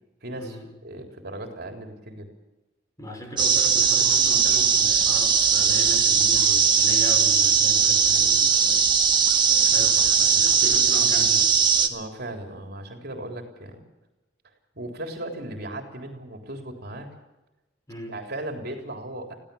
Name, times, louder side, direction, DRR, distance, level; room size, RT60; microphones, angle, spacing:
voice 1, 0.2-2.3 11.9-13.8 14.8-17.1 18.1-19.4, right 1 dB, 60° right, 3 dB, 3.7 m, -36 dB
voice 2, 3.0-8.9 9.7-11.5 17.9-18.1, equal, 20° left, 3 dB, 5.7 m, -38 dB
sound 1, 3.4-11.9, right 6 dB, 25° right, 1.7 m, -19 dB
22.5 x 16.5 x 7.1 m, 1.0 s
head